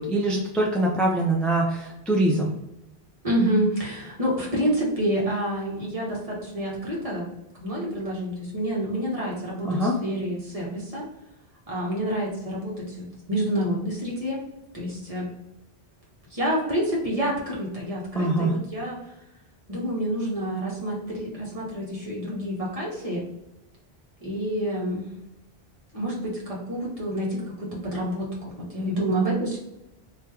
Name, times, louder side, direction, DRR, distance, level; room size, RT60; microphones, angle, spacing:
voice 1, 0.0-2.5 9.6-9.9 18.1-18.5 28.8-29.2, right 1 dB, ahead, -2 dB, 0.4 m, -24 dB
voice 2, 3.2-7.3 7.6-11.1 11.7-14.4 14.7-15.3 16.3-19.0 19.7-23.3 24.2-25.0 25.9-29.6, right 1 dB, 35° right, -5 dB, 1.4 m, -28 dB
3.1 x 2.9 x 3.5 m, 0.89 s
omnidirectional pair, 1.1 m